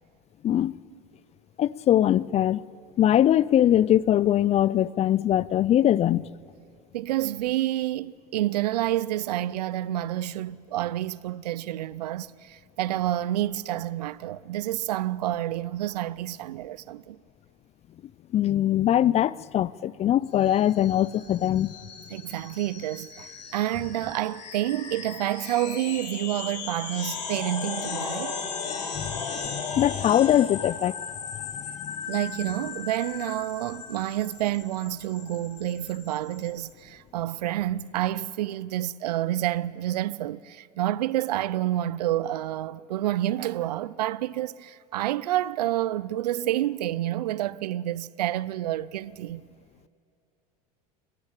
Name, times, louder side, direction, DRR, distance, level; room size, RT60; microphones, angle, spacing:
voice 1, 1.6-2.6 3.0-6.2 18.3-21.7 29.0-30.9 31.8-31.9, left 11 dB, 30° left, 0.4 m, -22 dB
voice 2, 6.9-17.2 22.1-28.4 32.1-49.4, right 13 dB, 80° right, 0.5 m, -29 dB
sound 1, 20.4-36.6, left 5 dB, 85° left, 3.6 m, -37 dB
20.0 x 15.0 x 8.9 m
hypercardioid pair, 85°, 20 cm